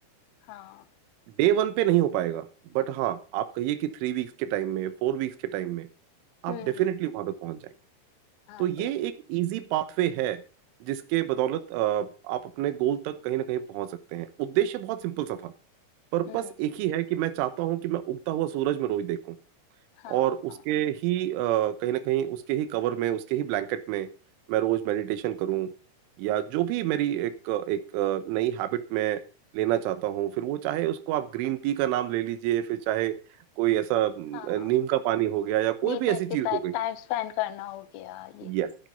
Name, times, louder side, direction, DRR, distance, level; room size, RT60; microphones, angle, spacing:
voice 1, 0.5-0.8 6.5-6.7 8.5-8.9 16.3-16.5 20.0-20.3 34.3-34.6 35.8-36.2 36.5-38.5, left 13 dB, 75° left, 12 dB, 2.2 m, -34 dB
voice 2, 1.4-2.5 2.7-5.9 6.4-7.6 8.6-10.4 10.8-15.5 16.1-19.4 20.1-24.1 24.5-25.7 26.2-29.2 29.5-33.2 33.6-36.7 38.4-38.7, right 13 dB, 90° right, 12 dB, 3.5 m, -27 dB
13.5 x 10.0 x 5.2 m, 0.33 s
omnidirectional pair, 5.5 m